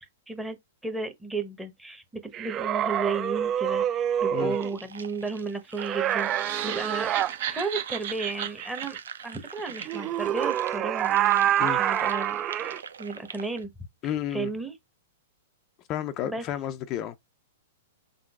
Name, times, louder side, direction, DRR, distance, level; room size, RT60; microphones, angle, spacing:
voice 1, 0.8-7.2 7.5-13.7 14.3-14.8 16.2-16.4, right 3 dB, 5° right, 1.0 m, -34 dB
sound 1, 2.3-4.7 5.8-7.3 9.9-12.8, right 11 dB, 30° right, 0.3 m, -26 dB
sound 2, 4.5-13.6, right 6 dB, 80° right, 0.6 m, -44 dB
sound 3, 6.2-10.4, right 10 dB, 55° right, 1.1 m, -35 dB
voice 2, 14.0-14.5 15.9-17.2, left 10 dB, 35° left, 0.4 m, -31 dB
5.3 x 3.7 x 2.3 m
hypercardioid pair, 115°, 0 cm